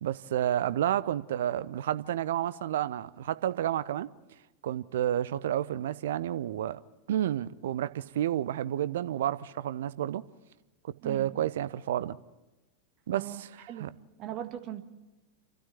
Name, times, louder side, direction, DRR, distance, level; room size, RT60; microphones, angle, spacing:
voice 1, 0.0-4.1 4.6-6.8 7.1-10.2 11.0-12.2 13.1-13.9, right 11 dB, 60° right, 0.7 m, -30 dB
voice 2, 11.0-11.3 13.1-13.8 14.2-14.8, right 11 dB, 35° right, 1.7 m, -39 dB
29.5 x 12.5 x 8.3 m
figure-of-eight pair, 90°, 0 cm